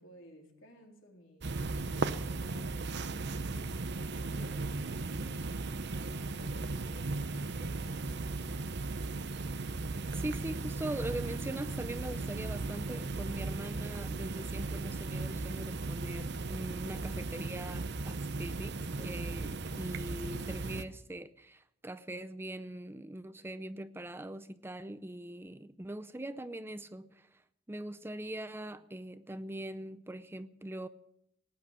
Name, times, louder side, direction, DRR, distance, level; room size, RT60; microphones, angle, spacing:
voice 1, 0.0-5.6 6.1-8.6, equal, 65° left, 3.8 m, -57 dB
sound 1, 1.4-20.8, right 3 dB, 55° right, 0.9 m, -37 dB
voice 2, 10.1-27.4 27.7-30.9, right 1 dB, 10° right, 0.5 m, -42 dB
18.5 x 10.0 x 6.6 m
head